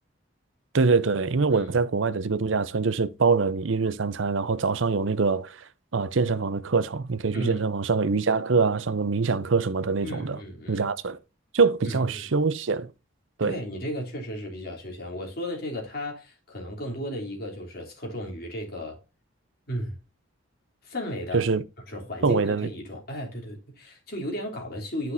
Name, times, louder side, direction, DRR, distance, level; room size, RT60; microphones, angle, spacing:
voice 1, 0.7-5.6 5.9-10.4 10.7-11.2 11.5-12.9 13.4-13.6 21.3-21.6 22.2-22.7, right 4 dB, 70° right, 0.7 m, -24 dB
voice 2, 7.3-7.7 10.0-10.9 11.8-12.3 13.4-19.0 19.7-20.0 20.8-21.5 21.9-25.1, equal, 50° left, 3.2 m, -34 dB
9.8 x 6.0 x 2.7 m
head